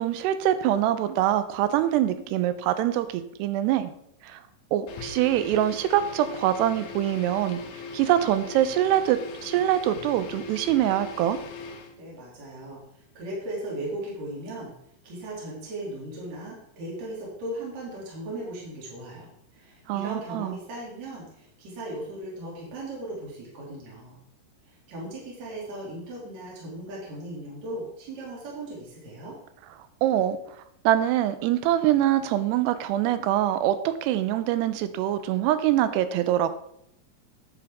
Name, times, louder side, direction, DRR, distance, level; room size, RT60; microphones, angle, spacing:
voice 1, 0.0-3.9 4.2-4.4 4.7-7.6 7.9-11.4 19.9-20.6 30.0-30.4 30.9-36.5, right 12 dB, 85° right, 12 dB, 2.8 m, -24 dB
sound 1, 4.9-11.9, left 4 dB, 85° left, 1.5 m, -39 dB
voice 2, 11.9-12.8 13.2-14.7 15.0-24.2 24.7-29.3, right 1 dB, 45° right, -5 dB, 3.8 m, -37 dB
9.6 x 8.8 x 3.5 m, 0.73 s
omnidirectional pair, 4.7 m